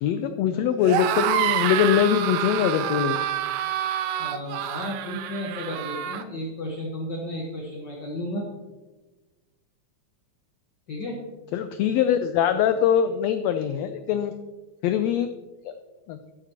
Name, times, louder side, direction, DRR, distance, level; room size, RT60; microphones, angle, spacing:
voice 1, 0.0-3.2 11.5-14.3 14.8-15.3 15.6-15.7 16.1-16.2, left 9 dB, 90° left, 9 dB, 1.5 m, -23 dB
sound 1, 0.8-6.2, right 11 dB, 75° right, 1.8 m, -27 dB
voice 2, 4.2-8.5 10.9-11.2, left 1 dB, 50° left, -2 dB, 1.4 m, -33 dB
13.0 x 9.0 x 2.9 m, 1.2 s
omnidirectional pair, 3.6 m